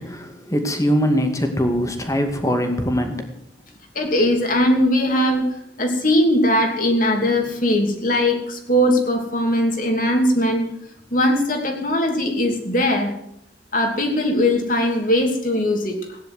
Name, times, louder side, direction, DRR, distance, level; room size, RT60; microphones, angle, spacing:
voice 1, 0.0-3.2, equal, 15° left, 5 dB, 2.2 m, -22 dB
voice 2, 3.9-5.5 5.8-10.6 11.1-13.1 13.7-16.2, left 1 dB, 45° left, 3 dB, 3.0 m, -20 dB
16.5 x 10.5 x 7.9 m, 0.77 s
head